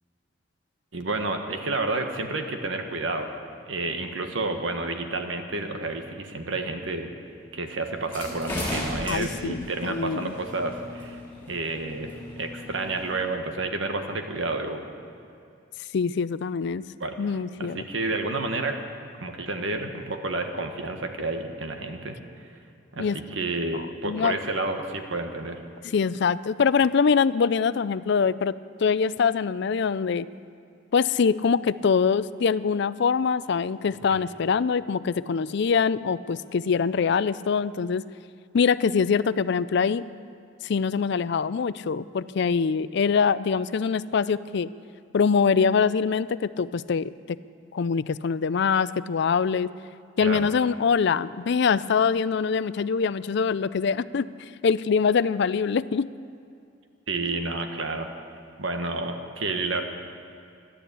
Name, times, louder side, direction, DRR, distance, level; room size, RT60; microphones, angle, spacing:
voice 1, 0.9-3.3 3.6-7.1 7.5-11.2 11.5-12.1 12.3-14.8 17.0-17.1 17.6-18.8 19.2-22.2 22.9-25.6 50.2-50.5 57.1-58.1 58.6-59.8, right 2 dB, 80° right, 5 dB, 1.5 m, -30 dB
sound 1, 8.0-13.2, left 1 dB, 10° left, 4.4 m, -36 dB
voice 2, 9.1-10.4 15.9-16.8 17.2-17.8 23.0-23.2 24.0-24.4 25.9-28.5 28.8-30.3 30.9-38.0 38.5-40.0 40.6-44.7 45.1-47.4 47.7-49.7 50.2-56.1, left 6 dB, 60° left, 16 dB, 0.4 m, -24 dB
13.5 x 12.0 x 8.4 m, 2.4 s
head